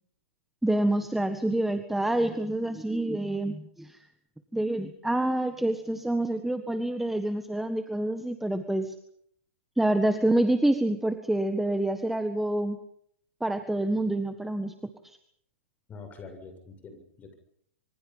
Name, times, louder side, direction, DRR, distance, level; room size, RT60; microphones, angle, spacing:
voice 1, 0.6-4.0 4.5-8.9 9.8-12.8 13.4-14.7, right 1 dB, 5° right, 8 dB, 1.5 m, -27 dB
voice 2, 15.9-17.4, left 4 dB, 20° left, 8 dB, 7.1 m, -45 dB
26.0 x 24.5 x 5.6 m, 0.68 s
hypercardioid pair, 125°, 7 cm